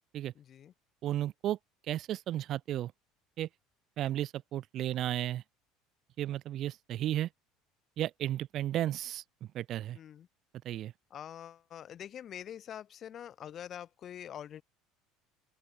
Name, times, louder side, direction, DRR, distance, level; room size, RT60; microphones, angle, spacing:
voice 1, 0.4-0.7 9.9-10.3 11.1-14.6, left 10 dB, 45° left, 3.9 m, -45 dB
voice 2, 1.0-1.6 1.9-2.9 3.4-3.5 4.0-5.4 6.2-7.3 8.0-9.2 9.5-10.0 10.6-10.9, right 12 dB, 50° right, 3.0 m, -33 dB
open air
supercardioid pair, 105°, 0 cm